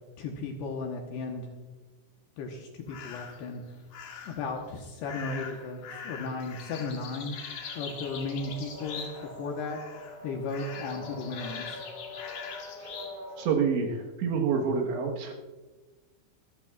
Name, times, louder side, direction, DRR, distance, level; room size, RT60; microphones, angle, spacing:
voice 1, 0.2-1.5 2.4-3.6 4.3-7.4 7.8-9.1 9.4-9.8 10.2-11.8, left 3 dB, 75° left, 2 dB, 2.7 m, -35 dB
sound 1, 2.9-3.4 3.9-4.5 5.0-9.4 9.6-10.2 10.5-13.1, left 6 dB, 55° left, 3.3 m, -42 dB
sound 2, 7.4-13.5, left 2 dB, 10° right, 4.8 m, -45 dB
voice 2, 13.4-15.3, right 5 dB, 70° right, 0 dB, 3.3 m, -28 dB
24.5 x 13.5 x 2.4 m, 1.3 s
omnidirectional pair, 5.9 m